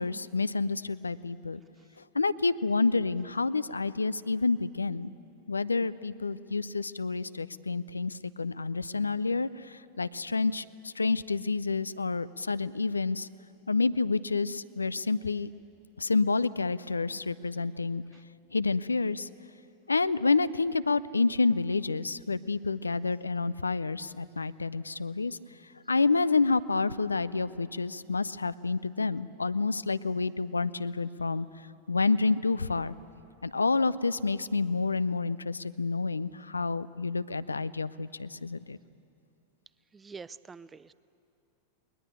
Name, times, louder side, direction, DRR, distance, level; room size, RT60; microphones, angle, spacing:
voice 1, 0.0-1.6 2.1-5.1 5.5-13.3 13.7-15.5 16.0-18.0 18.5-19.3 19.9-25.4 25.9-31.5 31.9-32.9 33.4-38.8, left 4 dB, 80° left, 16 dB, 0.5 m, -29 dB
voice 2, 39.9-40.9, right 5 dB, 15° right, 18 dB, 0.5 m, -45 dB
21.0 x 20.5 x 9.1 m, 2.6 s
figure-of-eight pair, 90°, 0 cm